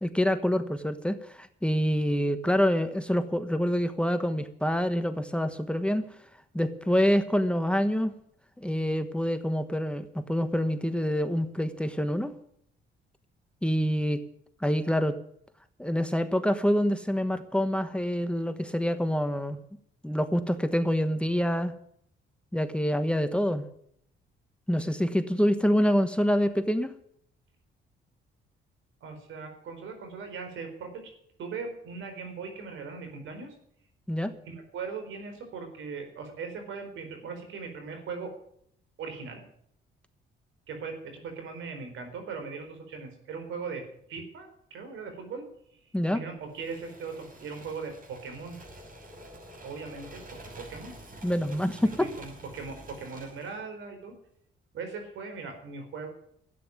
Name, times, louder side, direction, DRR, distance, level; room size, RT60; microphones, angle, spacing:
voice 1, 0.0-6.1 6.5-8.1 8.6-12.3 13.6-14.2 14.6-15.2 15.8-19.6 20.0-21.7 22.5-23.6 24.7-26.9 34.1-34.3 45.9-46.2 51.2-52.1, equal, 5° left, 9 dB, 1.2 m, -26 dB
voice 2, 29.0-31.0 31.4-33.5 34.5-38.3 39.0-39.4 40.7-43.8 44.1-45.4 46.1-48.6 49.6-50.9 52.2-54.1 54.7-56.1, right 5 dB, 80° right, 6 dB, 4.5 m, -39 dB
sound 1, 46.5-53.6, right 1 dB, 45° right, 6.4 m, -48 dB
13.0 x 9.5 x 9.5 m, 0.69 s
cardioid pair, 90°, 20 cm